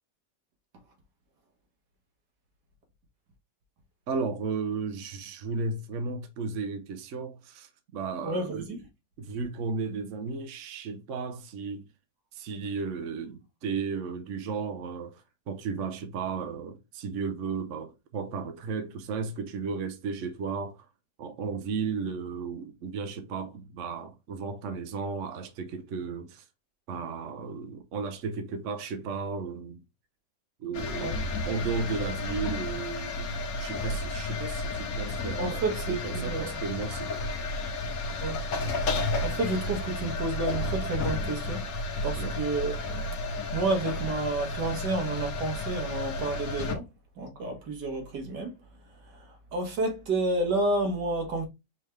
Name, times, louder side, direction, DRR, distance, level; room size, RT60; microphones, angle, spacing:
voice 1, 4.1-8.8 9.2-11.9 12.3-20.9 21.2-26.4 26.9-29.8 30.6-37.1 42.2-42.4, right 5 dB, 60° right, 0.9 m, -34 dB
voice 2, 8.2-8.8 31.0-31.2 35.4-36.5 38.2-38.4 39.2-41.6 42.0-43.0 43.5-46.9 47.2-48.5 49.1-51.5, right 2 dB, 75° right, 2.0 m, -30 dB
sound 1, 30.7-46.7, left 2 dB, 60° left, 1.3 m, -32 dB
4.5 x 3.4 x 3.2 m
omnidirectional pair, 1.8 m